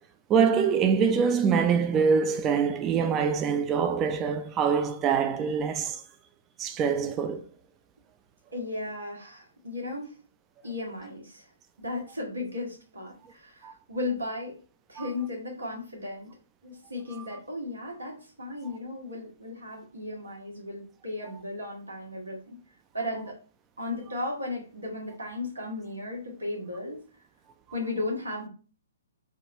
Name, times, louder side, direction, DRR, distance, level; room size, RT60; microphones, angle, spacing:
voice 1, 0.3-6.0 6.6-7.4 13.6-13.7 15.0-15.1, right 6 dB, 20° right, 0.4 m, -24 dB
voice 2, 8.5-10.2 10.6-11.5 11.8-14.6 14.9-16.3 16.6-22.6 22.9-23.3 23.8-27.0 27.7-28.5, left 2 dB, 90° right, 1.4 m, -35 dB
3.6 x 2.3 x 4.0 m
figure-of-eight pair, 125°, 0 cm